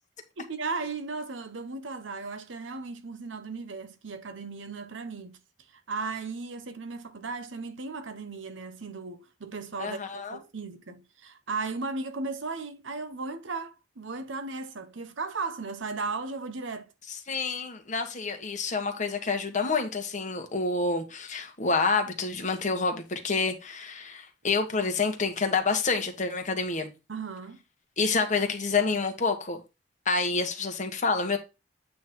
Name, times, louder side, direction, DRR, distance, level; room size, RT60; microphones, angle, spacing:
voice 1, 0.4-5.4 5.7-16.9 27.1-27.6, right 4 dB, 85° right, 0.9 m, -36 dB
voice 2, 9.8-10.4 17.1-26.9 28.0-29.6 30.0-31.4, left 4 dB, 40° left, 1.5 m, -28 dB
8.6 x 3.8 x 4.5 m
head